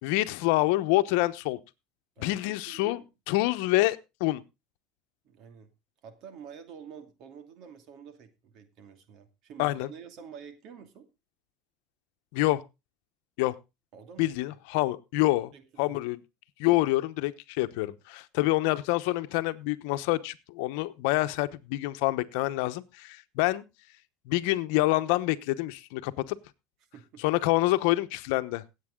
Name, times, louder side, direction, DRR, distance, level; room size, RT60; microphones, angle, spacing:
voice 1, 0.0-1.6 2.2-3.0 3.3-4.4 9.6-9.9 12.3-12.6 13.4-13.5 14.2-15.5 15.8-16.2 16.6-23.6 24.3-26.4 27.2-28.6, left 18 dB, 75° left, 0.9 m, -27 dB
voice 2, 2.2-3.1 5.2-5.7 6.0-11.1 13.9-14.6 15.5-16.0 26.9-27.4, right 7 dB, 60° right, 2.5 m, -48 dB
17.5 x 8.3 x 3.8 m
supercardioid pair, 110°, 0 cm